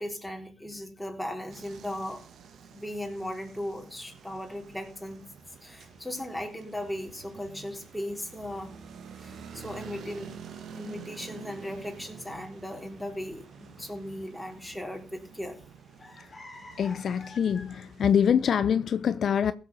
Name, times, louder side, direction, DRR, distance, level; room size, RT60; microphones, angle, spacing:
voice 1, 0.0-2.2 2.7-5.3 5.6-8.7 9.2-10.4 10.7-15.6, left 1 dB, 5° left, 3.9 m, -37 dB
sound 1, 1.5-18.3, right 6 dB, 65° right, 1.8 m, -48 dB
sound 2, 5.5-18.1, left 2 dB, 30° left, 3.7 m, -56 dB
voice 2, 16.8-19.5, left 8 dB, 60° left, 0.7 m, -25 dB
16.0 x 7.1 x 5.5 m
supercardioid pair, 70°, 0 cm